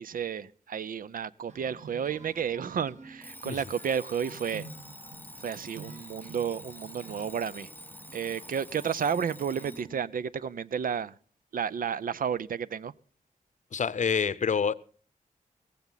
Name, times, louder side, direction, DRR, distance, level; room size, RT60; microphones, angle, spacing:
voice 1, 0.0-4.7 5.4-7.7 8.1-11.1 11.5-12.9, right 7 dB, 75° right, 0.6 m, -32 dB
sound 1, 1.5-10.0, right 3 dB, 55° right, 2.2 m, -50 dB
Alarm, 3.2-9.9, left 1 dB, 15° left, 0.6 m, -48 dB
voice 2, 13.7-14.7, left 6 dB, 60° left, 0.7 m, -27 dB
16.0 x 15.5 x 4.0 m
wide cardioid pair, 110°, 15 cm